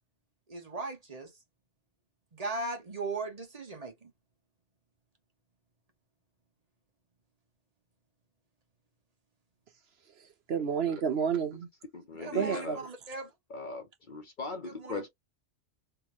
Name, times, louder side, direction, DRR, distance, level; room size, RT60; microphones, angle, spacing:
voice 1, 0.5-1.3 2.3-4.1 12.2-13.3 14.7-15.1, right 3 dB, 35° right, 1.1 m, -38 dB
voice 2, 10.2-11.7 12.3-12.9, right 7 dB, 65° right, 1.0 m, -31 dB
voice 3, 11.9-12.8 13.5-15.1, left 3 dB, 50° left, 0.8 m, -39 dB
3.5 x 2.2 x 3.0 m
omnidirectional pair, 1.2 m